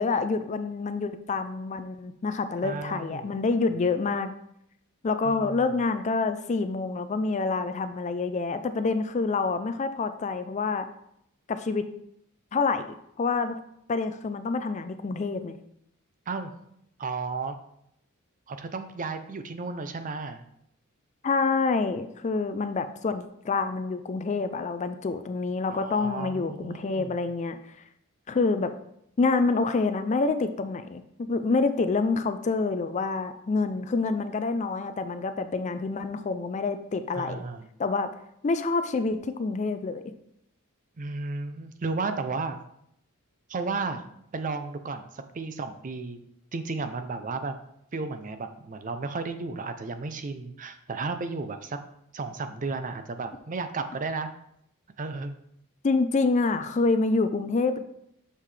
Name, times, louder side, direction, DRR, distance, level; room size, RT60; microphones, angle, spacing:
voice 1, 0.0-4.3 5.0-10.9 11.5-11.9 12.5-13.6 13.9-15.6 21.2-27.6 28.3-28.7 29.2-37.4 37.8-38.1 38.4-40.0 55.8-57.8, left 4 dB, 30° left, 10 dB, 0.4 m, -27 dB
voice 2, 2.6-3.3 3.7-3.8 5.2-5.7 16.3-16.5 17.0-17.5 18.5-20.4 25.7-27.2 37.1-37.7 41.0-42.6 43.5-44.0 44.3-46.2 46.5-47.6 47.9-51.8 52.1-54.3 55.0-55.3, right 3 dB, 35° right, 9 dB, 0.5 m, -33 dB
6.5 x 5.6 x 3.2 m, 0.75 s
head